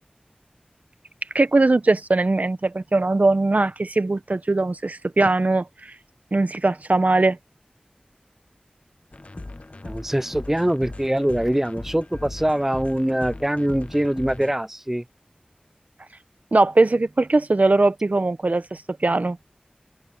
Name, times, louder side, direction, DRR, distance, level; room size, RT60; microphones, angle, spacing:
voice 1, 1.3-5.7 6.3-7.4 16.5-19.4, right 2 dB, 65° right, 1.0 m, -20 dB
sound 1, 9.1-14.5, left 2 dB, 50° left, 1.0 m, -38 dB
voice 2, 9.8-15.0, right 1 dB, 10° right, 0.5 m, -23 dB
open air
wide cardioid pair, 40°, 3 cm